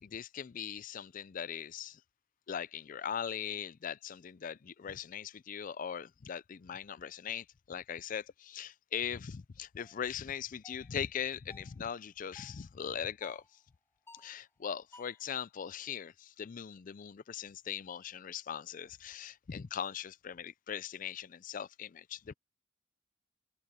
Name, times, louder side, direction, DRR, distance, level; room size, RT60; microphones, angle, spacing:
voice 1, 0.0-2.0 2.5-13.4 14.1-22.3, left 8 dB, 45° left, 0.4 m, -40 dB
sound 1, 8.9-9.1 9.8-10.0 10.6-10.9 11.5-11.8 12.3-12.7 13.2-13.5 14.1-14.4 14.9-15.3, left 2 dB, 15° left, 5.0 m, -57 dB
open air
head